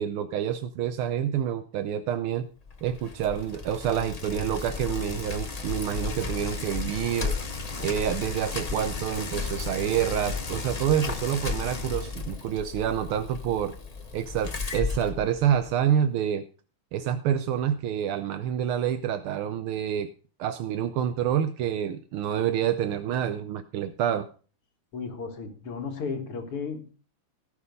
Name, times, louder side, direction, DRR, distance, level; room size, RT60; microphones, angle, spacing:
voice 1, 0.0-2.5 2.8-7.3 7.8-13.7 14.1-16.4 16.9-20.1 20.4-24.3, right 9 dB, 80° right, 1.6 m, -27 dB
Bicycle, 2.7-15.8, left 4 dB, 50° left, 0.4 m, -34 dB
voice 2, 24.9-26.9, left 5 dB, 90° left, 2.6 m, -34 dB
17.0 x 6.0 x 5.3 m
omnidirectional pair, 2.4 m